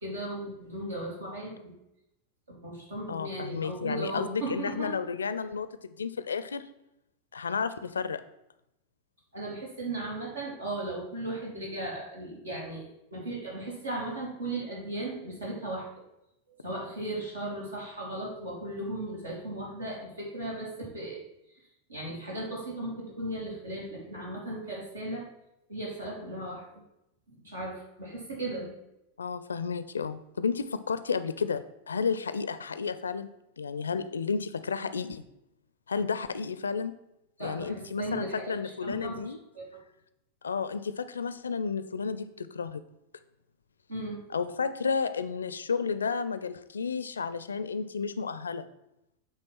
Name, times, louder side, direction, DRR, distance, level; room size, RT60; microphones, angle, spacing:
voice 1, 0.0-1.8 2.5-4.9 9.3-12.9 13.1-15.9 16.6-21.2 21.9-25.3 25.7-26.8 27.3-28.7 37.4-39.6 43.9-44.2, right 1 dB, 75° right, -3 dB, 2.7 m, -36 dB
voice 2, 3.1-6.7 7.3-8.2 29.2-33.3 33.6-35.2 35.9-36.9 37.4-39.4 40.4-42.8 44.3-48.6, left 5 dB, 70° left, 12 dB, 0.4 m, -32 dB
8.2 x 3.3 x 6.0 m, 0.85 s
figure-of-eight pair, 90°, 0 cm